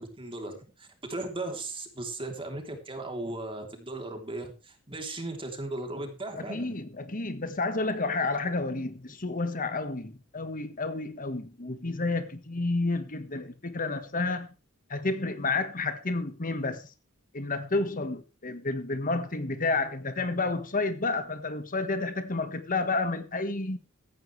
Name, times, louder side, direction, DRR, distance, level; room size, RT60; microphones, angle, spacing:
voice 1, 0.0-6.8, right 2 dB, 25° right, 3.4 m, -37 dB
voice 2, 6.3-14.5 14.9-16.8 17.3-23.8, left 3 dB, 40° left, 1.5 m, -30 dB
16.0 x 14.5 x 3.3 m
head